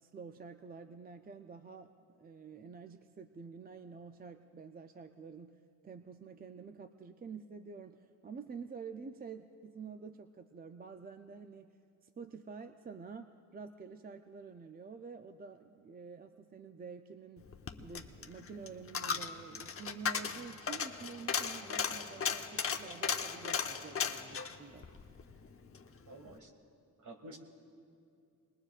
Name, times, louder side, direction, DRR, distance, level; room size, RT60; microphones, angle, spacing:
voice 1, 0.0-5.5 5.8-11.7 12.0-17.5 17.8-24.9, right 5 dB, 25° right, 8 dB, 0.5 m, -49 dB
Coin (dropping), 17.4-25.9 26.2-26.3, left 6 dB, 40° left, 0.8 m, -37 dB
voice 2, 26.1-26.5 27.0-27.4, right 2 dB, 55° right, 4 dB, 2.1 m, -50 dB
25.5 x 21.0 x 2.5 m, 2.4 s
cardioid pair, 105°, 35 cm